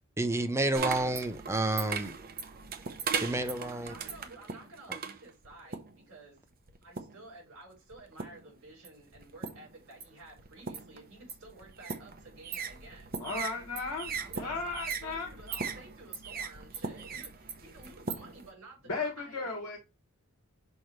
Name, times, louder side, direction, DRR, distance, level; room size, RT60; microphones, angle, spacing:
voice 1, 0.2-2.2 3.2-4.0 4.9-5.0, right 2 dB, 10° right, 0.6 m, -30 dB
sound 1, 0.7-6.0 6.7-7.3 7.9-8.5 8.8-18.5, right 5 dB, 40° right, 0.8 m, -39 dB
voice 2, 3.7-6.5 6.8-13.2 14.2-19.5, right 2 dB, 60° right, 4.2 m, -52 dB
voice 3, 13.2-15.3 18.9-19.8, left 3 dB, 70° left, 1.4 m, -35 dB
6.2 x 3.0 x 5.1 m
head